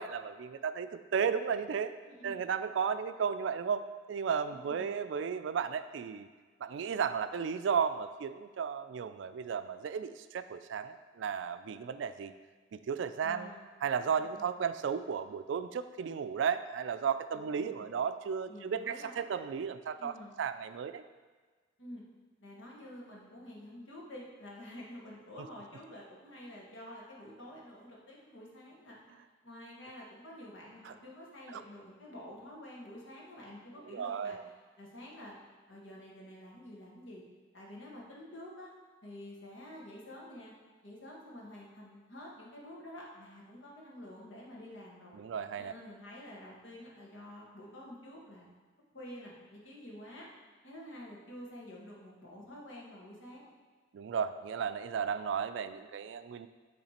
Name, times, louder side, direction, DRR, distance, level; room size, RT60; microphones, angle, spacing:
voice 1, 0.0-1.9 2.2-3.8 4.1-6.3 6.6-12.3 12.7-13.5 13.8-21.0 30.8-30.9 31.5-31.6 33.9-34.4 45.1-45.7 53.9-56.5, right 7 dB, 70° right, 11 dB, 0.3 m, -34 dB
voice 2, 2.0-2.4 4.4-4.9 13.2-13.7 14.2-14.5 17.3-17.9 18.5-19.2 20.0-20.3 21.8-22.0 22.4-29.0 29.4-35.3 35.7-37.2 37.5-38.7 39.0-40.5 40.8-45.2 45.6-48.5 48.9-50.3 50.6-53.5, left 1 dB, 80° left, -3 dB, 1.5 m, -49 dB
8.7 x 3.3 x 4.2 m, 1.4 s
head